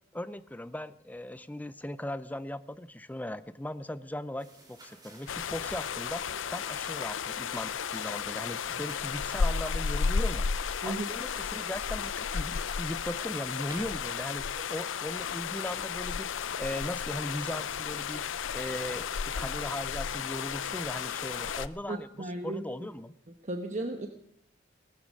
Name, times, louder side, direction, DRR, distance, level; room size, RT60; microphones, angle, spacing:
voice 1, 0.1-6.2 6.5-10.5 10.8-14.4 14.7-16.3 16.6-18.2 18.5-23.1, left 1 dB, 10° left, 15 dB, 0.5 m, -38 dB
sound 1, 4.4-13.9, right 2 dB, 20° right, 4.1 m, -55 dB
sound 2, 5.3-21.7, left 6 dB, 75° left, 0.6 m, -33 dB
voice 2, 10.8-11.2 21.9-22.6 23.4-24.1, right 2 dB, 40° right, 5 dB, 1.0 m, -35 dB
18.0 x 13.5 x 5.3 m, 0.70 s
head